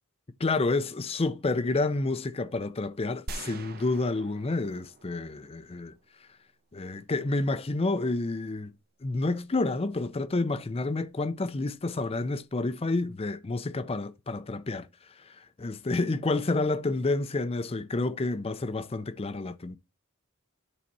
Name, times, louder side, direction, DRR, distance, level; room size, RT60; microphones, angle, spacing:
voice 1, 0.4-5.9 6.7-8.7 9.0-14.9 15.3-19.8, left 2 dB, 25° left, 0.5 m, -29 dB
sound 1, 3.3-6.2, right 3 dB, 45° right, 0.7 m, -44 dB
10.0 x 4.1 x 4.6 m
head